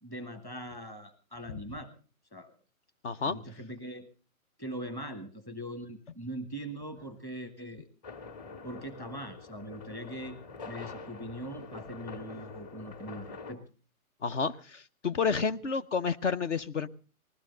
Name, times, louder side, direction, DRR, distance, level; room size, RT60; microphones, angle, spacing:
voice 1, 0.0-1.9 2.3-2.5 3.2-4.1 4.6-7.9 8.6-10.4 10.7-13.6, right 1 dB, 5° left, 7 dB, 1.1 m, -41 dB
voice 2, 3.0-3.4 14.2-16.9, left 5 dB, 55° left, 12 dB, 0.9 m, -30 dB
sound 1, 8.0-13.5, left 4 dB, 30° left, 2.2 m, -45 dB
20.0 x 15.0 x 3.9 m, 0.38 s
hypercardioid pair, 160°, 43 cm